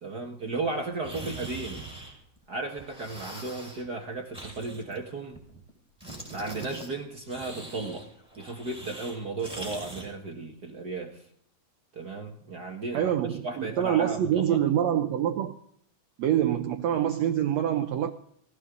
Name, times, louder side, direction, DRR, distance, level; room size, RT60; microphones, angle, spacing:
voice 1, 0.0-1.9 2.5-5.4 6.3-8.1 8.4-11.2 11.9-13.1 13.4-14.6, right 3 dB, 45° right, 1.4 m, -35 dB
sound 1, 1.0-2.4 2.7-3.9 4.3-5.7 6.0-6.9 7.3-10.1, right 2 dB, ahead, 5.4 m, -42 dB
voice 2, 12.9-15.6 16.2-18.1, right 10 dB, 70° right, 1.7 m, -25 dB
19.0 x 18.5 x 3.9 m
omnidirectional pair, 3.9 m